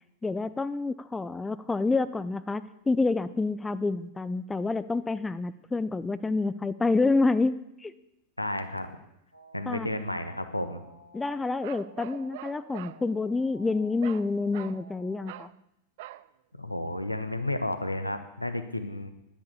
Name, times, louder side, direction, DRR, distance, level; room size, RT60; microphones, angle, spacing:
voice 1, 0.2-7.5 7.8-7.9 9.7-9.9 11.1-15.5, left 3 dB, 10° left, 14 dB, 0.5 m, -28 dB
voice 2, 8.4-8.9 9.5-10.8 16.6-19.1, left 1 dB, 85° left, 9 dB, 1.1 m, -32 dB
sound 1, 9.3-15.3, right 1 dB, 85° right, 1.6 m, -53 dB
Bark, 11.6-13.0 14.0-14.3 14.5-14.8 15.3-15.5 16.0-16.3, right 16 dB, 50° right, 0.5 m, -43 dB
10.5 x 10.0 x 8.2 m, 0.84 s
figure-of-eight pair, 90°, 0 cm